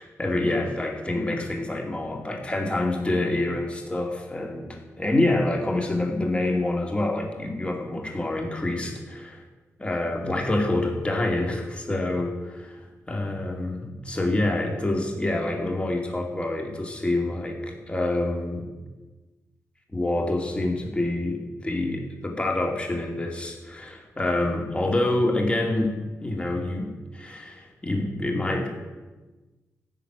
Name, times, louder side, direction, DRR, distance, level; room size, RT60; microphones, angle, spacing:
voice 1, 0.0-9.4 9.8-18.7 19.9-28.7, left 2 dB, 20° left, 1 dB, 2.5 m, -27 dB
14.0 x 6.5 x 9.8 m, 1.2 s
cardioid pair, 95°, 6 cm